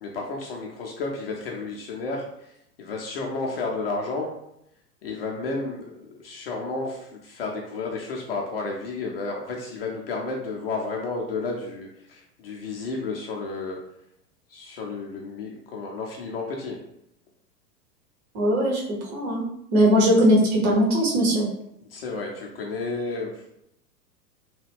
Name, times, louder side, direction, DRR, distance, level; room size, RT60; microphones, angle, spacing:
voice 1, 0.0-2.5 2.8-4.3 5.0-13.8 14.5-16.8 21.9-23.5, left 3 dB, 40° left, -1 dB, 0.5 m, -32 dB
voice 2, 18.3-19.4 19.7-21.5, equal, 40° right, -3 dB, 1.1 m, -20 dB
2.9 x 2.2 x 3.4 m, 0.78 s
figure-of-eight pair, 100°, 49 cm